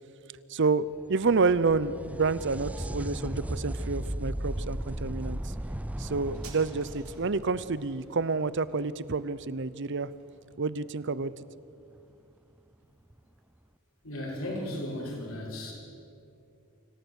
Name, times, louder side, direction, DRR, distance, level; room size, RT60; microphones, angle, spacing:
voice 1, 0.5-5.5 6.0-10.1 10.6-11.3, right 4 dB, 55° right, 17 dB, 0.7 m, -29 dB
sound 1, 1.0-8.6 12.0-12.1 13.1-13.2, right 1 dB, 5° right, 0.4 m, -36 dB
sound 2, 6.2-13.3 13.6-13.7, right 6 dB, 85° right, 5.3 m, -57 dB
voice 2, 14.0-15.7, left 1 dB, 70° left, -2 dB, 6.0 m, -35 dB
25.5 x 17.0 x 8.2 m, 2.6 s
head